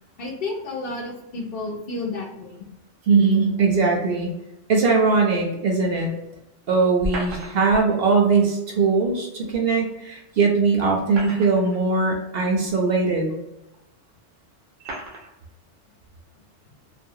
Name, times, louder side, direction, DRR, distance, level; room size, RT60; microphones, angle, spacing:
voice 1, 0.2-2.6, left 2 dB, 60° left, 0 dB, 0.7 m, -31 dB
voice 2, 3.1-4.3 4.7-6.1 6.7-13.3, right 4 dB, 60° right, 1 dB, 0.7 m, -20 dB
sound 1, 7.0-7.8 9.5-9.6 10.9-11.8 12.7-12.8 13.7-13.8 14.8-15.3, right 1 dB, 90° right, 1.0 m, -33 dB
2.5 x 2.0 x 2.7 m, 0.89 s
omnidirectional pair, 1.2 m